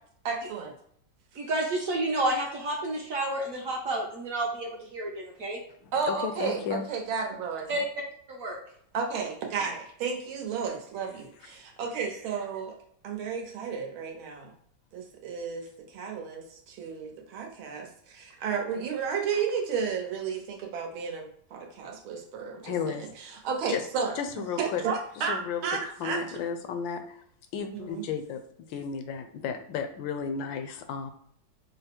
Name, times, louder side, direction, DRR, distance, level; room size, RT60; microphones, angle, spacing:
voice 1, 0.3-0.7 5.9-7.7 8.9-12.8 13.0-14.5 14.9-23.0 23.4-24.2 24.6-26.2 27.7-28.0, right 6 dB, 85° right, 2 dB, 1.7 m, -32 dB
voice 2, 1.4-5.6 7.7-7.8 8.3-8.6, right 1 dB, 60° right, 0 dB, 0.9 m, -30 dB
voice 3, 5.8-6.8 22.6-23.4 23.7-23.8 24.1-24.8 25.2-25.6 26.0-27.2 27.5-28.4 28.7-31.1, left 6 dB, 75° left, 7 dB, 1.2 m, -33 dB
5.4 x 2.0 x 4.4 m, 0.65 s
omnidirectional pair, 2.2 m